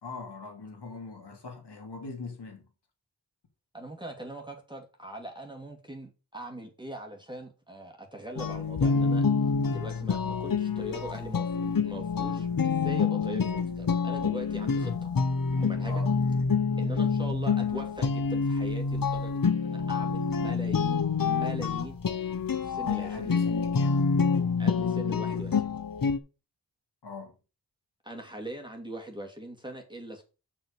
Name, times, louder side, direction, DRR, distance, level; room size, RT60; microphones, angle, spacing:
voice 1, 0.0-2.7 15.8-16.1 22.9-24.0 27.0-27.3, left 3 dB, 80° left, 3.1 m, -41 dB
voice 2, 3.7-9.2 9.6-15.1 15.5-16.0 16.8-22.0 22.6-23.4 24.6-25.7 28.0-30.2, right 1 dB, 10° right, 2.7 m, -41 dB
sound 1, 8.3-26.2, left 5 dB, 55° left, 1.0 m, -27 dB
6.3 x 6.1 x 6.8 m
cardioid pair, 50°, 41 cm